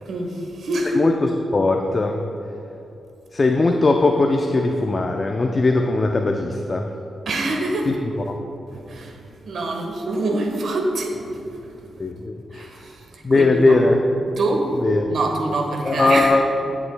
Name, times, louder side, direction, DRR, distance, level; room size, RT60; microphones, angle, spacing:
voice 1, 0.0-1.0 7.3-7.9 8.7-9.2 9.4-11.4 12.5-13.8 14.4-14.7 15.1-16.3, right 2 dB, 70° right, 2 dB, 1.3 m, -25 dB
voice 2, 0.9-2.2 3.3-6.9 7.9-8.0 12.0-12.7 13.2-14.0 14.8-15.1 15.8-16.4, left 3 dB, 35° left, 3 dB, 0.5 m, -19 dB
18.0 x 7.1 x 2.2 m, 2.8 s
cardioid pair, 80°, 0 cm